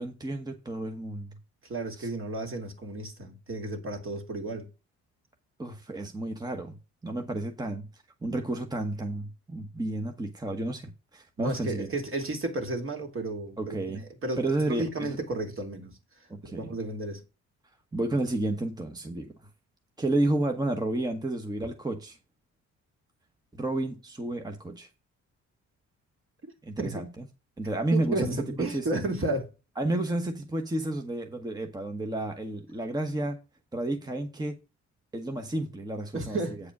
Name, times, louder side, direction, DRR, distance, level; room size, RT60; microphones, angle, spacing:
voice 1, 0.0-1.4 2.0-2.1 5.6-6.8 7.0-11.9 13.6-14.0 14.4-15.2 16.3-16.7 17.9-19.3 20.0-22.2 23.5-24.9 26.6-27.3 27.6-28.9 29.8-33.4 33.7-34.6 35.1-36.4, right 2 dB, 15° right, 1.1 m, -31 dB
voice 2, 1.7-4.7 11.4-15.9 16.4-17.2 26.8-27.0 27.9-29.5 36.1-36.6, right 2 dB, 45° right, 2.5 m, -33 dB
8.5 x 4.9 x 5.9 m
cardioid pair, 90°, 30 cm